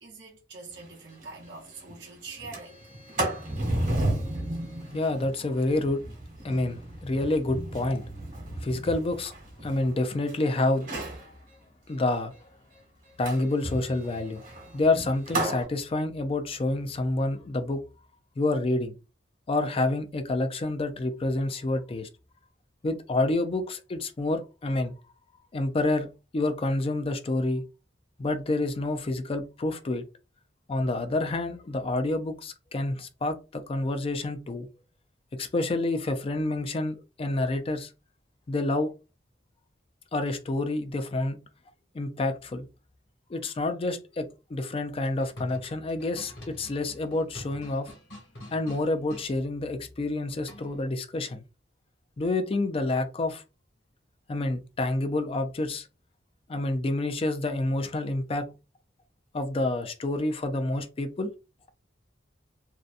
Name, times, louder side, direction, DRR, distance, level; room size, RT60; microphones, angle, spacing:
voice 1, 0.0-2.8, right 3 dB, 70° right, 0.8 m, -44 dB
Sliding door, 0.8-0.9 1.2-1.3 1.6-1.9 2.3-10.3 10.8-11.2 13.2-15.6, right 1 dB, 45° right, 1.1 m, -33 dB
voice 2, 4.9-6.1 6.4-8.1 8.6-9.3 9.6-10.9 11.2-11.3 11.9-12.3 13.2-14.4 14.7-17.9 18.4-19.0 19.5-22.1 22.8-24.9 25.5-27.6 28.2-30.0 30.7-34.7 35.3-37.9 38.5-38.9 40.1-41.5 41.9-42.7 43.3-47.9 48.5-51.4 52.2-53.4 54.3-55.9 56.5-58.5 59.3-61.3, left 2 dB, 30° left, 0.4 m, -28 dB
sound 1, 45.0-49.3 50.5-50.9, left 1 dB, 65° left, 1.2 m, -46 dB
2.7 x 2.2 x 2.4 m
head